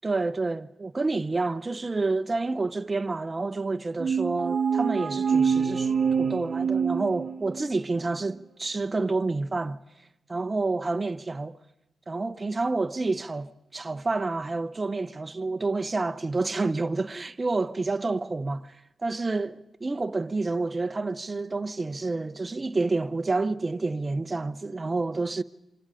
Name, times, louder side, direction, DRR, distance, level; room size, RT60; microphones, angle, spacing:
voice 1, 0.0-9.8 10.3-11.6 12.1-18.8 19.0-25.4, right 3 dB, 35° right, 0.8 m, -29 dB
sound 1, 4.0-7.7, right 6 dB, 55° right, 1.0 m, -26 dB
27.5 x 24.0 x 5.0 m
cardioid pair, 60°, 0 cm